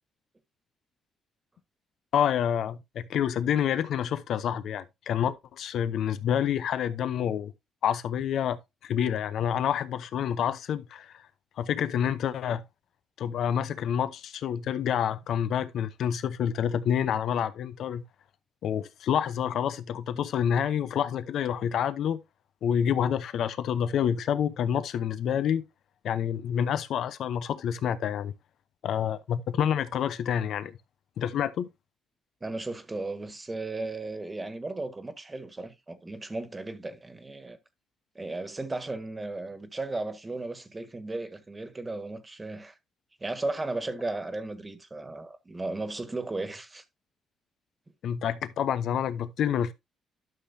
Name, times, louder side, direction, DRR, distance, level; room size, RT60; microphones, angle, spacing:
voice 1, 2.1-7.5 7.8-11.1 11.6-12.6 13.2-18.0 18.6-22.2 22.6-25.6 26.0-28.3 28.8-30.7 31.2-31.7 48.0-49.7, left 9 dB, 70° left, 0.8 m, -28 dB
voice 2, 32.4-37.6 38.1-42.8 43.2-46.8, right 2 dB, 20° right, 1.6 m, -35 dB
12.0 x 5.8 x 2.7 m
cardioid pair, 90°, 0 cm